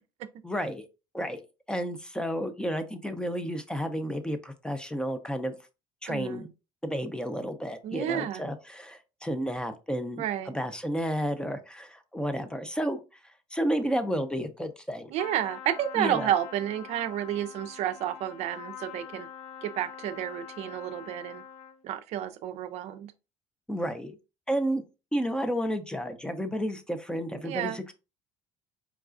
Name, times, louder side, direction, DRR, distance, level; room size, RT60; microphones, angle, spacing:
voice 1, 0.4-0.9 1.1-5.6 6.0-6.5 6.8-15.1 16.0-16.3 23.7-24.2 24.5-24.8 25.1-27.9, equal, 5° left, 0.5 m, -31 dB
voice 2, 6.1-6.5 7.8-8.4 10.2-10.6 15.1-19.3 19.6-21.4 21.8-23.1 27.4-27.8, right 11 dB, 60° right, 0.4 m, -31 dB
Trumpet, 15.2-21.9, left 9 dB, 60° left, 0.4 m, -45 dB
4.6 x 2.3 x 2.4 m
supercardioid pair, 85°, 12 cm